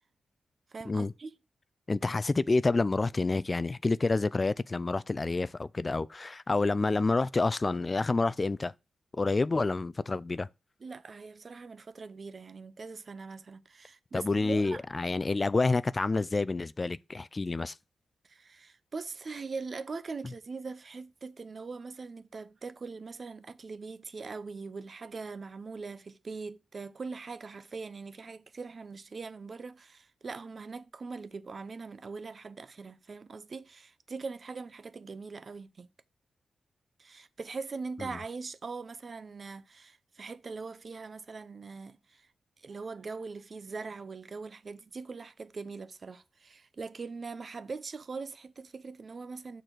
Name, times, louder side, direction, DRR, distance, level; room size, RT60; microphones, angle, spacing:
voice 1, 0.7-1.3 10.8-14.8 18.2-35.9 37.0-42.3 42.6-49.6, right 4 dB, 50° right, 0.6 m, -41 dB
voice 2, 1.9-8.7 9.2-10.5 14.1-17.7, left 3 dB, 35° left, 0.3 m, -28 dB
6.6 x 4.0 x 6.1 m
cardioid pair, 70°, 0 cm